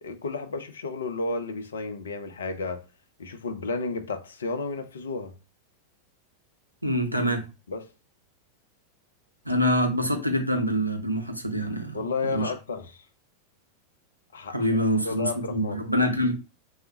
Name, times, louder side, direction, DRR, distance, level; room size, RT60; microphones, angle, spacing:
voice 1, 0.0-2.8 3.2-5.3 7.7-7.9 11.9-13.0 14.3-15.8, left 3 dB, 70° left, 0.4 m, -32 dB
voice 2, 6.8-7.5 9.5-12.5 14.5-16.3, equal, 90° right, 0.6 m, -25 dB
3.2 x 2.0 x 2.7 m
figure-of-eight pair, 90°, 0 cm